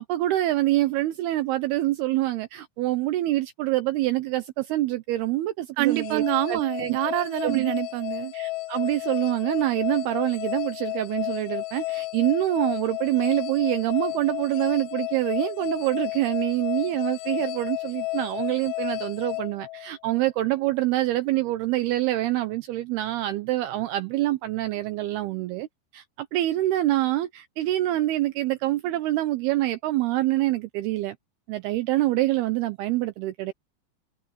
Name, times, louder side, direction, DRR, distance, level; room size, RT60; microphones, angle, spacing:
voice 1, 0.0-7.0 7.4-7.7 8.3-25.7 25.9-31.2 31.5-33.5, right 16 dB, 90° right, 2.2 m, -26 dB
sound 1, 5.8-20.2, left 21 dB, 85° left, 2.8 m, -32 dB
voice 2, 5.8-8.3, right 17 dB, 75° right, 2.6 m, -26 dB
omnidirectional pair, 5.6 m